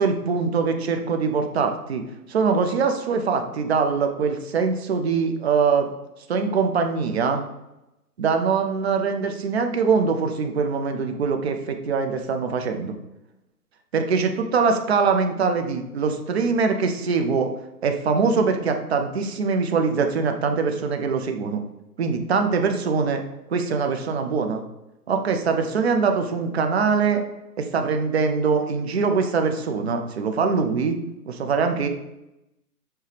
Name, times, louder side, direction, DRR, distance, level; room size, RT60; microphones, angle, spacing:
voice 1, 0.0-2.0 2.3-5.9 6.3-7.4 8.2-13.0 13.9-17.5 17.8-21.6 22.0-23.2 23.5-24.6 25.1-27.2 27.6-31.0 31.3-31.9, right 5 dB, 45° right, 5 dB, 0.4 m, -23 dB
5.7 x 2.2 x 3.2 m, 0.92 s
hypercardioid pair, 150°, 47 cm